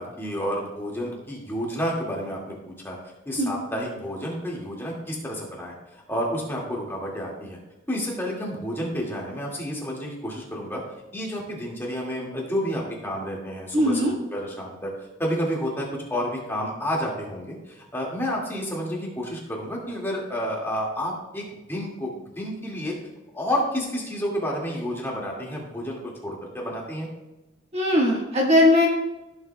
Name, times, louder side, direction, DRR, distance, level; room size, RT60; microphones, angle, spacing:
voice 1, 0.0-3.0 3.3-7.6 7.9-10.8 11.1-14.9 15.2-22.9 23.3-27.1, equal, 10° left, -3 dB, 1.9 m, -30 dB
voice 2, 13.7-14.1 27.7-28.9, left 1 dB, 30° right, -2 dB, 1.5 m, -19 dB
15.0 x 7.3 x 2.2 m, 1.0 s
head